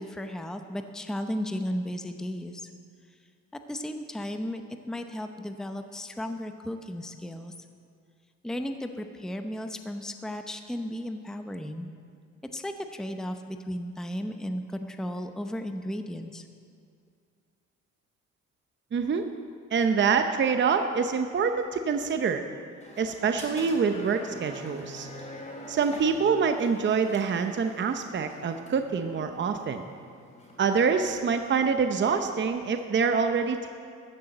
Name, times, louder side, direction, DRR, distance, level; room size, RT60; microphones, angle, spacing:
voice 1, 0.0-2.7 3.7-4.6 4.9-7.5 8.4-11.9 12.5-16.4, equal, ahead, 7 dB, 0.7 m, -35 dB
voice 2, 18.9-19.2 19.7-22.4 23.0-25.1 25.7-29.9 30.6-33.7, right 5 dB, 40° right, 7 dB, 0.7 m, -26 dB
sound 1, 22.8-32.3, equal, 25° left, 3.7 m, -46 dB
13.5 x 7.0 x 7.8 m, 2.2 s
cardioid pair, 90°, 30 cm